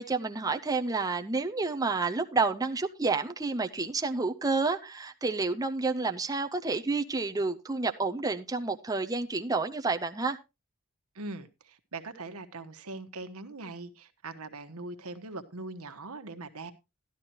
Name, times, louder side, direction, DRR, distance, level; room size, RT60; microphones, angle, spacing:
voice 1, 0.0-10.4, right 3 dB, 15° right, 0.6 m, -29 dB
voice 2, 11.1-16.7, right 3 dB, 85° right, 1.3 m, -41 dB
12.5 x 12.0 x 3.0 m
head